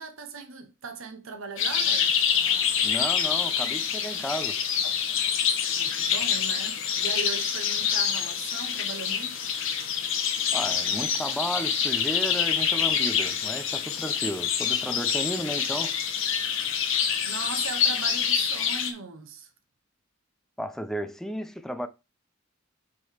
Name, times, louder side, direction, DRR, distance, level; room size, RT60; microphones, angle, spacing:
voice 1, 0.0-2.1 5.7-9.5 16.9-19.5, right 4 dB, 70° right, 1.1 m, -39 dB
sound 1, 1.6-18.9, left 7 dB, 65° left, 1.4 m, -26 dB
voice 2, 2.8-4.6 10.5-15.9 20.6-21.9, equal, ahead, 0.6 m, -33 dB
7.0 x 3.9 x 4.8 m
head